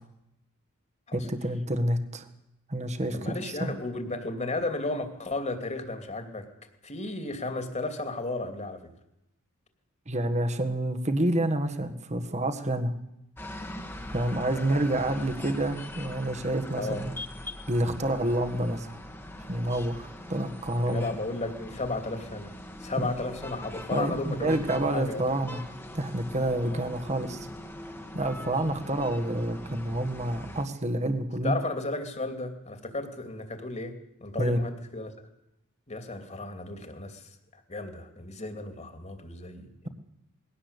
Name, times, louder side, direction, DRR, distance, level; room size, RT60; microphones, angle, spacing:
voice 1, 1.1-2.3 2.7-3.3 3.6-3.7 10.1-12.9 14.1-17.1 17.7-19.0 19.5-21.0 23.0-23.1 23.9-25.6 25.9-27.5 28.1-31.6 34.4-34.6, right 1 dB, 30° right, 7 dB, 1.7 m, -28 dB
voice 2, 3.1-6.5 6.8-8.8 14.5-14.8 16.8-17.1 20.9-22.5 22.8-25.3 26.6-26.8 28.4-28.7 31.4-35.1 35.9-37.3 37.7-39.9, left 2 dB, 30° left, 7 dB, 2.8 m, -34 dB
sound 1, 13.4-30.7, left 1 dB, 10° left, 1.7 m, -42 dB
21.5 x 17.5 x 8.3 m, 0.85 s
head